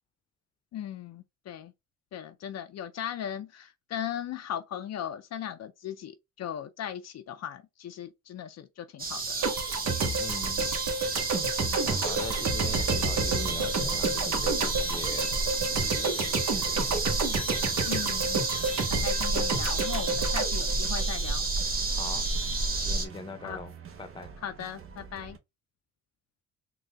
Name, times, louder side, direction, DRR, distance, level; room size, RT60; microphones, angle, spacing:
voice 1, 0.7-1.7 2.1-9.5 17.9-18.4 18.9-21.5 23.4-23.6 24.4-25.4, left 10 dB, 60° left, 0.6 m, -38 dB
sound 1, 9.0-23.1, right 3 dB, 30° right, 1.3 m, -30 dB
sound 2, 9.4-21.6, right 3 dB, 65° right, 1.2 m, -30 dB
voice 2, 10.2-10.7 11.8-15.5 15.8-17.0 21.9-22.3 22.8-23.7 24.0-24.3, left 3 dB, 15° left, 0.8 m, -41 dB
sound 3, 11.9-25.4, right 7 dB, 45° right, 0.9 m, -47 dB
3.9 x 2.4 x 3.3 m
cardioid pair, 90°, 30 cm